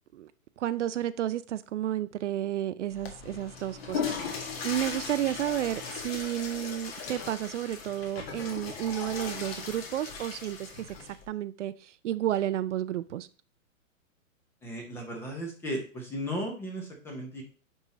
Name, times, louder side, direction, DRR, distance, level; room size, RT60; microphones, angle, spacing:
voice 1, 0.6-13.3, right 12 dB, 60° right, 0.5 m, -32 dB
Water / Toilet flush, 2.9-11.3, left 5 dB, 45° left, 1.7 m, -38 dB
voice 2, 14.6-17.4, equal, 5° left, 0.7 m, -35 dB
9.9 x 3.7 x 4.1 m
hypercardioid pair, 160°, 41 cm